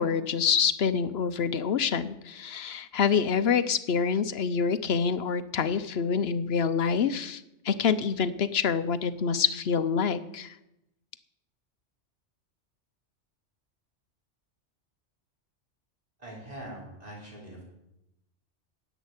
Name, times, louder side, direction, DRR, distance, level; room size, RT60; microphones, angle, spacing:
voice 1, 0.0-10.5, left 6 dB, 60° left, 13 dB, 0.9 m, -26 dB
voice 2, 16.2-17.6, right 1 dB, 35° right, -4 dB, 4.8 m, -42 dB
10.5 x 8.1 x 9.5 m, 0.88 s
omnidirectional pair, 1.2 m